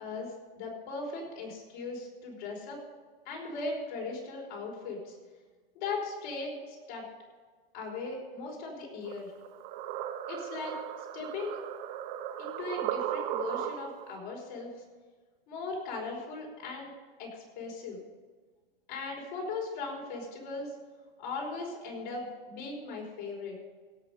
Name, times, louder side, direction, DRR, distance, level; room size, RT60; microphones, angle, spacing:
voice 1, 0.0-2.8 3.2-5.2 5.7-7.0 7.7-9.3 10.3-11.6 12.4-14.7 15.5-16.9 17.2-18.0 18.9-20.7 21.2-23.5, left 3 dB, 55° left, -1 dB, 5.0 m, -38 dB
sound 1, 9.0-14.1, right 10 dB, 50° right, 1.0 m, -36 dB
17.0 x 6.0 x 7.0 m, 1.4 s
hypercardioid pair, 130°, 29 cm